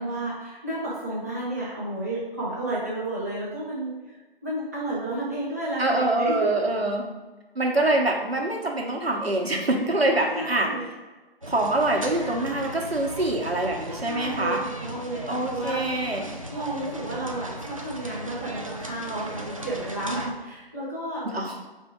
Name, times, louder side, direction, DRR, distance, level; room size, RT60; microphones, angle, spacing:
voice 1, 0.0-6.5 10.3-10.8 14.0-15.9 16.5-21.2, right 1 dB, 15° right, -7 dB, 0.8 m, -31 dB
voice 2, 5.8-7.0 7.5-10.7 11.5-14.6 15.3-16.2 21.2-21.7, right 2 dB, 80° right, 1 dB, 1.1 m, -25 dB
sound 1, 11.4-20.3, right 1 dB, 35° right, 0.4 m, -37 dB
4.3 x 2.7 x 4.5 m, 1.2 s
figure-of-eight pair, 155°, 30 cm